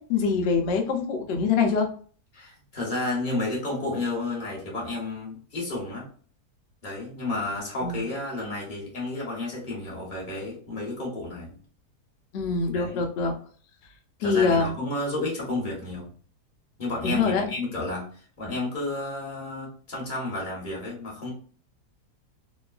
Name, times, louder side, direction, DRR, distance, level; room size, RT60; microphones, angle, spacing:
voice 1, 0.0-1.9 7.8-8.0 12.3-13.3 14.2-14.7 17.0-17.5, left 5 dB, 70° left, 3 dB, 0.6 m, -24 dB
voice 2, 2.3-6.1 6.8-11.6 12.7-13.0 14.2-16.1 16.8-21.3, left 2 dB, 35° left, -4 dB, 1.0 m, -31 dB
3.0 x 2.2 x 2.3 m, 0.44 s
omnidirectional pair, 1.8 m